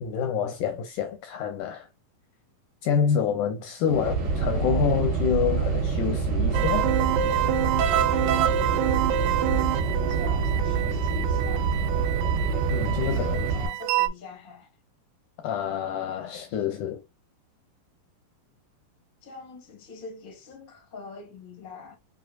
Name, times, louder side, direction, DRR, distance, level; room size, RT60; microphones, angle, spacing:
voice 1, 0.0-1.9 2.8-7.0 12.7-13.4 15.4-17.0, left 7 dB, 80° left, 1.9 m, -27 dB
voice 2, 3.8-4.1 10.1-11.7 12.8-14.7 19.2-21.9, left 5 dB, 45° left, 0.6 m, -44 dB
sound 1, 3.9-13.7, right 5 dB, 50° right, 2.7 m, -26 dB
sound 2, 6.5-14.1, right 11 dB, 85° right, 1.8 m, -27 dB
6.1 x 2.7 x 2.4 m
omnidirectional pair, 4.1 m